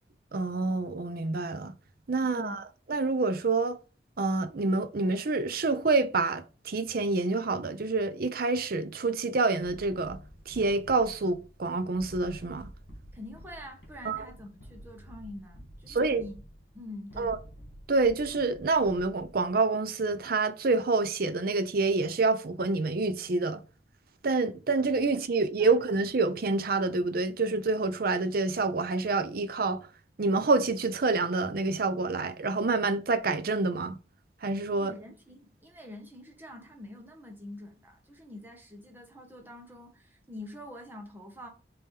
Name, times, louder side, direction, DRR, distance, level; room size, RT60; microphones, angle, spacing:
voice 1, 0.3-1.7 2.1-2.6 2.9-3.8 4.2-10.2 10.5-12.7 14.1-14.2 15.9-16.2 17.2-17.4 17.9-23.6 24.2-29.9 30.2-34.0 34.4-34.9, right 3 dB, 50° right, 0.6 m, -27 dB
voice 2, 2.2-2.6 13.1-16.4 16.7-17.4 25.6-25.7 34.7-41.5, left 1 dB, 10° right, 1.1 m, -45 dB
sound 1, 9.6-19.5, equal, 70° left, 2.4 m, -49 dB
5.3 x 3.0 x 3.3 m
head